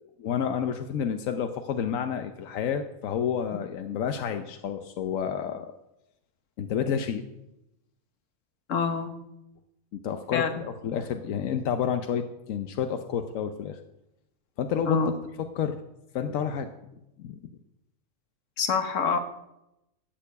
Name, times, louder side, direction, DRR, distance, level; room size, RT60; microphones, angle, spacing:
voice 1, 0.0-5.7 6.6-7.2 9.9-13.8 14.6-15.0 15.5-15.8 16.1-16.7 17.2-17.4, left 8 dB, 90° left, 7 dB, 1.2 m, -30 dB
voice 2, 8.7-9.2 10.3-10.5 14.9-15.1 18.6-19.2, left 5 dB, 75° left, 8 dB, 1.5 m, -26 dB
13.0 x 6.8 x 8.3 m, 0.90 s
omnidirectional pair, 1.3 m